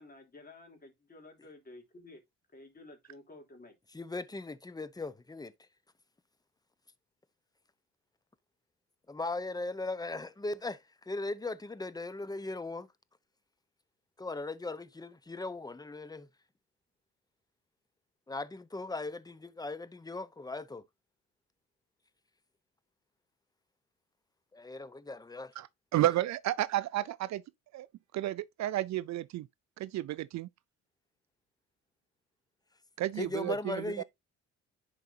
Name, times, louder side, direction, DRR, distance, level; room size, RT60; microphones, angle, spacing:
voice 1, 0.0-2.2 2.5-3.7, left 2 dB, 30° left, 3.0 m, -52 dB
voice 2, 3.9-5.5 9.1-12.9 14.2-16.3 18.3-20.8 24.5-25.5 33.2-34.0, left 2 dB, 15° left, 0.8 m, -38 dB
voice 3, 25.9-27.4 27.7-27.9 28.1-29.5 29.8-30.5 33.0-34.0, right 14 dB, 65° right, 0.5 m, -32 dB
10.5 x 4.8 x 2.7 m
cardioid pair, 90°, 30 cm